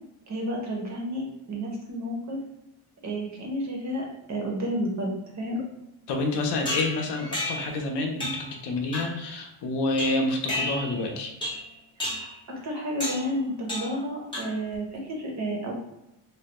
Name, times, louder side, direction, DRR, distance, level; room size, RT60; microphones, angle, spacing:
voice 1, 0.3-2.4 3.0-5.1 5.3-5.6 12.0-15.7, equal, 35° right, 0 dB, 0.6 m, -31 dB
voice 2, 6.1-11.3, left 2 dB, 55° left, 2 dB, 0.6 m, -28 dB
sound 1, 6.6-7.8 8.2-8.5 8.9-9.3 10.0-11.0 11.4-11.7 12.0-12.4 13.0-13.3 13.7-14.0 14.3-14.7, left 1 dB, 10° left, 0.6 m, -32 dB
3.3 x 2.2 x 2.8 m, 0.89 s
cardioid pair, 175°, 49 cm